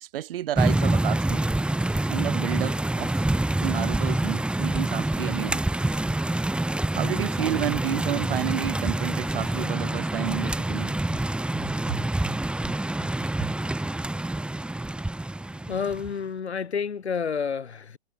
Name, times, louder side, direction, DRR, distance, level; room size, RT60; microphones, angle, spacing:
voice 1, 0.0-1.4 2.1-3.2 3.6-5.6 6.9-10.9 11.9-12.0, right 12 dB, 55° right, 1.7 m, -31 dB
sound 1, 0.6-16.1, right 1 dB, 5° right, 2.3 m, -26 dB
voice 2, 15.5-18.0, left 6 dB, 75° left, 5.4 m, -30 dB
figure-of-eight pair, 120°, 33 cm